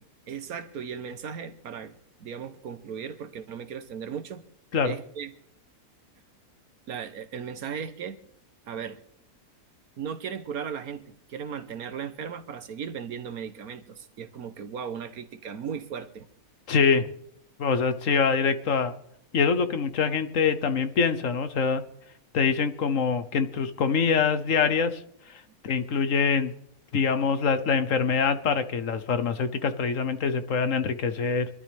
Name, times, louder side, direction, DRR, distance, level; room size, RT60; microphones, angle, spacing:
voice 1, 0.3-4.4 4.8-5.3 6.9-8.2 8.7-9.0 10.0-16.3, right 7 dB, 75° right, 10 dB, 1.5 m, -37 dB
voice 2, 16.7-17.1 17.6-18.9 19.3-21.8 22.3-25.0 25.3-26.5 26.9-31.5, left 5 dB, 60° left, 10 dB, 1.3 m, -24 dB
25.0 x 12.5 x 3.5 m, 0.70 s
omnidirectional pair, 1.6 m